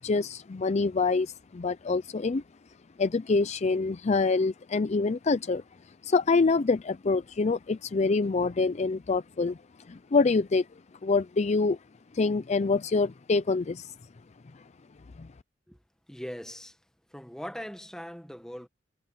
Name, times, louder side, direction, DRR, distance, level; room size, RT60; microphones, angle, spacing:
voice 1, 0.0-2.4 3.0-5.6 6.0-9.6 9.9-10.7 11.0-11.8 12.1-13.9 15.2-15.3, left 4 dB, 35° left, 0.4 m, -26 dB
voice 2, 16.1-16.8 17.1-18.7, equal, 5° left, 1.4 m, -40 dB
head